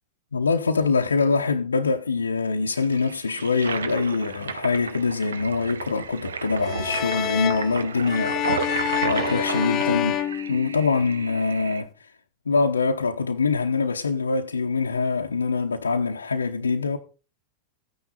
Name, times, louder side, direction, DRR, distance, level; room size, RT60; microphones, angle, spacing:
voice 1, 0.3-8.7 9.0-10.2 10.5-11.9 12.5-17.0, left 4 dB, 75° left, 0.9 m, -24 dB
Toilet flush, 2.7-11.8, right 5 dB, 70° right, 1.1 m, -33 dB
sound 1, 6.6-11.2, left 11 dB, 35° left, 0.6 m, -28 dB
14.5 x 9.6 x 4.1 m
figure-of-eight pair, 90°, 0 cm